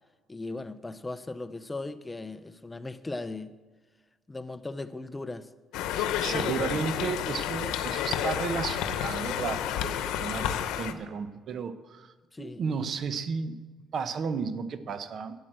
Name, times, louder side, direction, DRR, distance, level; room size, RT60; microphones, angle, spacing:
voice 1, 0.3-3.5 4.3-5.5 6.2-6.8 12.3-12.6, left 2 dB, 15° left, 0.6 m, -38 dB
Conversation, 5.7-10.9, left 10 dB, 90° left, 0.9 m, -30 dB
voice 2, 6.0-12.1 12.4-13.6 13.9-15.4, right 6 dB, 50° right, 0.9 m, -33 dB
12.0 x 9.9 x 7.6 m
cardioid pair, 115°, 0 cm